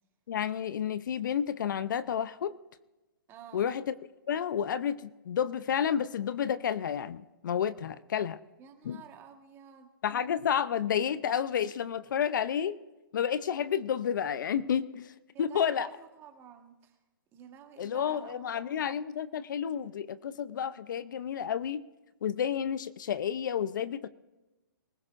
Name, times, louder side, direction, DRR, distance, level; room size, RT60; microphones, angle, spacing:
voice 1, 0.3-2.5 3.5-3.9 4.3-8.4 8.8-9.0 10.0-12.8 13.1-15.1 15.4-15.9 17.8-21.8 22.2-24.1, left 8 dB, 60° left, 14 dB, 0.7 m, -30 dB
voice 2, 3.3-3.7 8.6-9.9 15.3-17.0 17.3-18.8, right 8 dB, 20° right, 5 dB, 1.6 m, -51 dB
24.0 x 15.5 x 2.6 m, 1.1 s
hypercardioid pair, 145°, 12 cm